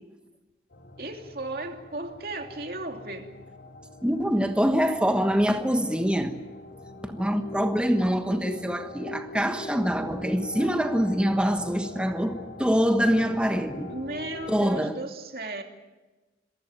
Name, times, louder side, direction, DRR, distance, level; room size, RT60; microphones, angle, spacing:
sound 1, 0.7-14.7, left 2 dB, 70° left, 2.4 m, -43 dB
voice 1, 1.0-3.3 13.9-15.6, right 2 dB, 55° right, 2.8 m, -35 dB
voice 2, 4.0-6.3 7.0-13.9 14.5-15.0, equal, 5° right, 1.3 m, -25 dB
27.0 x 15.5 x 9.1 m
head